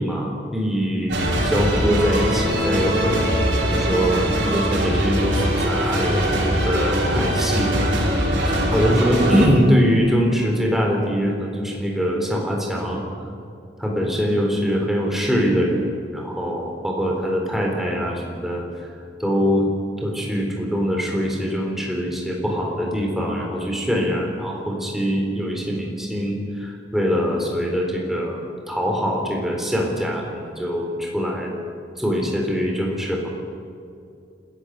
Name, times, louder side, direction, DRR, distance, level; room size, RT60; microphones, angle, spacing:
voice 1, 0.0-3.4 3.7-13.0 13.8-18.6 19.2-19.7 20.0-28.4 28.7-31.6 32.0-33.3, equal, ahead, -1 dB, 3.8 m, -23 dB
sound 1, 1.1-9.5, equal, 85° right, 4.9 m, -21 dB
27.0 x 15.5 x 6.7 m, 2.5 s
head